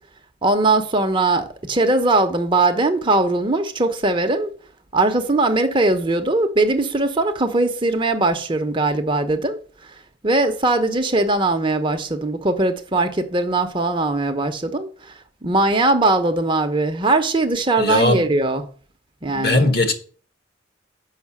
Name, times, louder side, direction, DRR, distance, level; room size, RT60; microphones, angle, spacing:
voice 1, 0.4-4.5 4.9-9.6 10.2-15.1 15.4-18.6 19.2-19.7, right 2 dB, 25° right, 0.8 m, -20 dB
voice 2, 17.8-18.3 19.3-19.9, left 2 dB, 55° left, 1.5 m, -18 dB
6.5 x 5.5 x 7.2 m
head